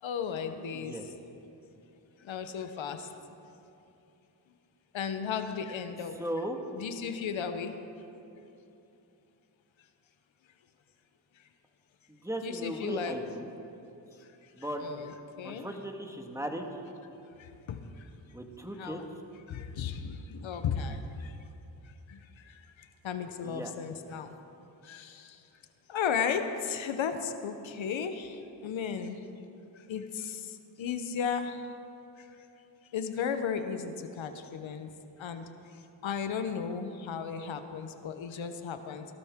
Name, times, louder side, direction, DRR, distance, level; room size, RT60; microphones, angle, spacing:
voice 1, 0.0-1.0 2.2-3.1 4.9-6.2 6.7-7.8 12.4-13.2 14.2-14.5 14.8-15.1 15.4-15.8 17.4-18.1 18.8-19.0 19.5-21.4 21.8-24.4 24.8-25.4 25.9-29.3 29.7-31.7 32.2-32.3 32.9-34.9 35.2-39.1, left 6 dB, 75° left, 8 dB, 0.9 m, -35 dB
voice 2, 0.7-1.0 6.2-6.6 12.1-13.5 14.5-14.9 15.4-16.7 18.3-19.0 23.4-23.7, right 1 dB, 5° right, 3 dB, 1.7 m, -37 dB
19.0 x 12.5 x 3.6 m, 2.8 s
cardioid pair, 45°, 47 cm